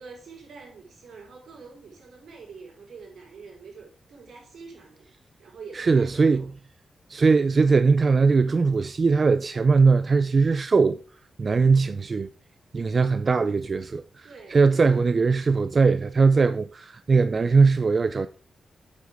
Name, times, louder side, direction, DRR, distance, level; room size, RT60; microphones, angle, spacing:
voice 1, 0.0-5.1 5.4-6.5 14.2-15.1, right 5 dB, 80° right, 5.1 m, -45 dB
voice 2, 5.7-6.4 7.1-11.0 11.4-12.3 12.7-18.3, right 4 dB, 40° right, 0.5 m, -20 dB
8.3 x 7.8 x 3.7 m
wide cardioid pair, 130°, 0 cm